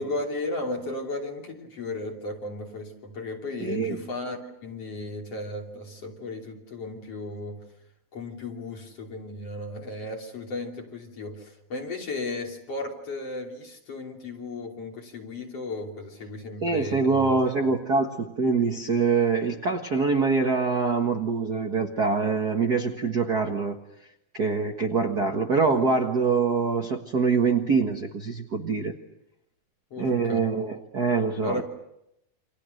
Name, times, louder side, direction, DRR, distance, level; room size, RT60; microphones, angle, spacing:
voice 1, 0.0-7.6 8.1-17.3 29.9-30.4 31.4-31.6, left 2 dB, 40° left, 1 dB, 3.8 m, -35 dB
voice 2, 3.6-4.0 16.6-23.7 24.3-29.0 30.0-31.6, right 4 dB, 65° right, 3 dB, 0.9 m, -24 dB
29.5 x 26.0 x 6.7 m, 0.84 s
omnidirectional pair, 4.6 m